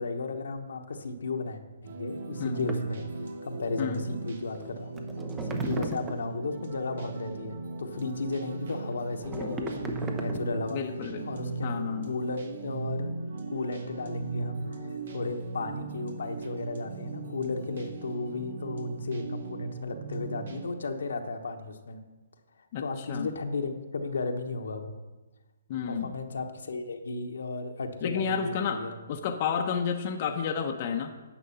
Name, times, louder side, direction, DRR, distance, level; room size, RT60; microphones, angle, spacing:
voice 1, 0.0-3.0 3.4-4.9 5.4-10.8 11.2-11.7 12.0-13.1 13.5-22.0 22.8-25.0 25.9-29.0, left 3 dB, 75° left, 5 dB, 1.1 m, -34 dB
sound 1, 1.8-20.7, right 3 dB, 65° right, 1.2 m, -37 dB
sound 2, 2.7-2.9 4.5-4.6 5.0-6.3 8.9-10.7, right 2 dB, 15° right, 0.8 m, -36 dB
voice 2, 10.7-11.3 11.6-12.1 22.7-23.3 25.7-26.1 28.0-28.8 29.1-31.1, left 7 dB, 40° left, 3 dB, 0.8 m, -31 dB
10.0 x 6.1 x 5.7 m, 1.2 s
hypercardioid pair, 145°, 0 cm